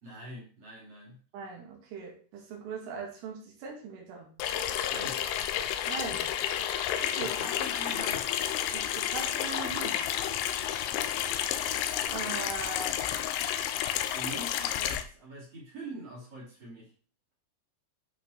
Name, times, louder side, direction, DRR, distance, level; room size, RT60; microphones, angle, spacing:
voice 1, 0.0-1.2 4.9-5.2 7.2-8.3 14.1-16.9, right 1 dB, 35° right, -2 dB, 3.0 m, -43 dB
voice 2, 1.3-4.3 5.9-6.3 7.0-7.4 8.7-10.0 12.1-13.0, right 5 dB, 85° right, 0 dB, 5.0 m, -40 dB
Water tap faucet / Sink (filling or washing), 4.4-15.0, left 10 dB, 85° left, 3.1 m, -31 dB
11.5 x 5.4 x 4.1 m, 0.40 s
omnidirectional pair, 5.6 m